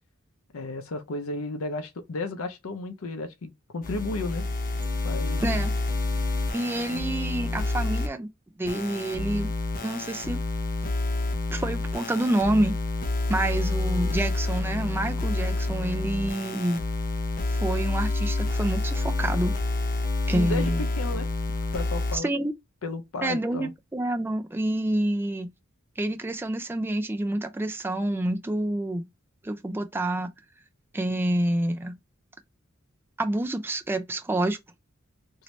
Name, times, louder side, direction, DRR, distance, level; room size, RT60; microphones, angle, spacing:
voice 1, 0.5-4.4 5.0-5.7 6.9-7.0 20.3-21.3 21.7-22.3 22.8-23.7, left 2 dB, 90° left, 0.6 m, -33 dB
sound 1, 3.8-8.1 8.7-22.2, left 2 dB, 40° left, 0.6 m, -28 dB
voice 2, 6.5-8.3 8.6-9.5 9.8-10.4 11.5-12.8 13.3-16.8 17.5-19.6 20.3-20.8 22.1-22.5 23.2-25.5 26.0-29.1 29.4-30.3 30.9-32.0 33.2-34.6, right 1 dB, 10° right, 0.3 m, -28 dB
3.1 x 2.6 x 3.0 m
head